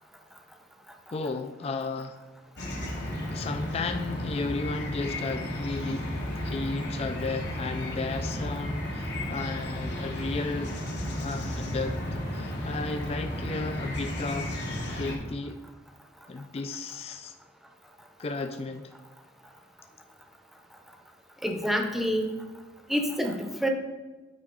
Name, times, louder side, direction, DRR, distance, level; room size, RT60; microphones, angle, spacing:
voice 1, 1.1-2.2 3.0-6.0 6.4-10.7 11.1-12.0 12.3-14.6 14.9-15.6 16.3-17.3 18.2-18.9, left 3 dB, 35° left, 7 dB, 0.3 m, -34 dB
sound 1, 2.6-15.2, left 1 dB, 65° left, 1.4 m, -33 dB
voice 2, 21.4-22.3 22.9-23.7, equal, ahead, 3 dB, 0.7 m, -27 dB
8.8 x 4.6 x 3.8 m, 1.3 s
head